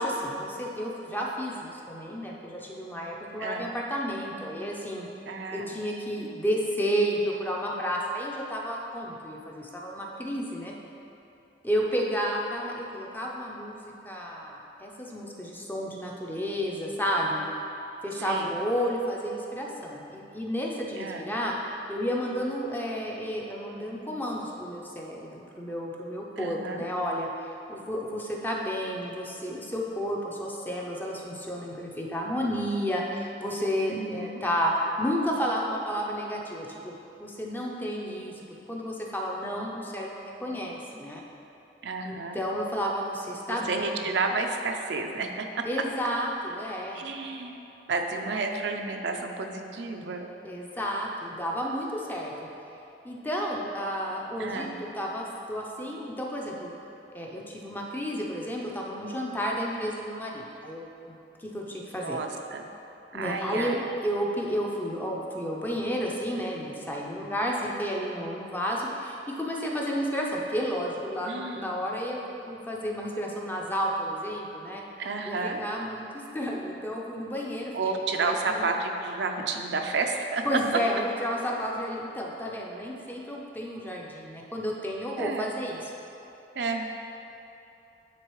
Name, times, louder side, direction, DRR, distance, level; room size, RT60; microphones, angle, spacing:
voice 1, 0.0-5.1 5.5-10.7 11.6-17.5 18.0-21.5 21.9-36.9 37.2-38.3 38.7-41.2 42.0-44.0 45.6-47.0 50.4-52.5 53.0-56.7 57.1-62.2 63.1-63.8 64.0-72.2 72.4-74.8 75.2-76.0 76.3-78.7 80.4-85.8, equal, 10° left, -2 dB, 0.6 m, -31 dB
voice 2, 5.3-5.8 18.2-18.5 21.0-21.3 26.4-26.8 33.9-34.4 41.8-42.4 43.5-45.6 46.9-47.6 47.9-50.3 54.4-54.8 61.9-62.7 63.1-63.9 71.2-71.7 75.0-75.7 77.7-80.6 85.2-85.5 86.6-86.8, right 4 dB, 75° right, 3 dB, 0.5 m, -31 dB
9.8 x 3.8 x 3.1 m, 2.9 s
head